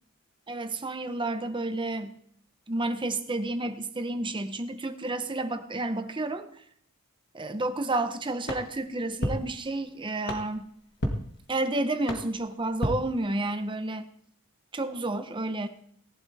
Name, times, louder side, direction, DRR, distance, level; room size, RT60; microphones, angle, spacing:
voice 1, 0.5-2.1 2.7-6.5 7.3-10.7 11.5-14.1 14.7-15.7, right 2 dB, 20° right, 9 dB, 0.8 m, -30 dB
sound 1, 8.4-13.8, equal, 50° left, 1.8 m, -35 dB
18.0 x 11.0 x 3.4 m, 0.63 s
head